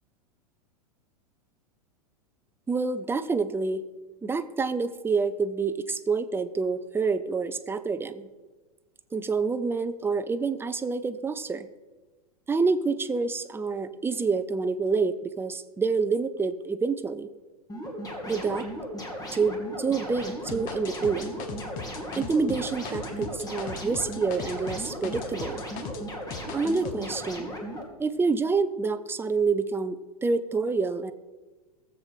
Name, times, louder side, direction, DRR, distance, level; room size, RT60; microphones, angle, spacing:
voice 1, 2.7-3.8 4.2-8.3 9.1-11.7 12.5-17.3 18.3-18.7 19.3-21.3 22.2-25.6 26.5-27.5 28.0-31.1, right 4 dB, 10° right, 11 dB, 0.6 m, -27 dB
sound 1, 17.7-27.8, equal, 20° left, 2.6 m, -36 dB
sound 2, 20.5-26.0 26.3-27.0, left 5 dB, 45° left, 1.4 m, -39 dB
18.5 x 7.6 x 4.5 m, 1.3 s
hypercardioid pair, 105°, 20 cm